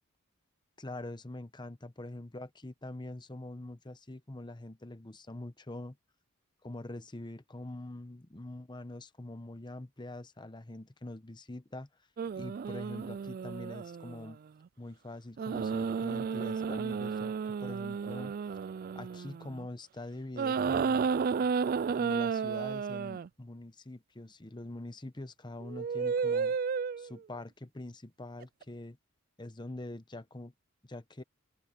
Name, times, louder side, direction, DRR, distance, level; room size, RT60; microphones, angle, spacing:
voice 1, 0.8-6.0 6.6-11.9 12.3-14.4 14.8-18.3 18.9-21.1 21.9-26.6 27.0-29.0 29.4-30.5 30.8-31.2, left 1 dB, 20° left, 0.9 m, -44 dB
sound 1, 12.2-14.3 15.4-19.7 20.4-23.3 25.6-27.2 28.4-28.6, right 6 dB, 45° right, 0.3 m, -32 dB
open air
head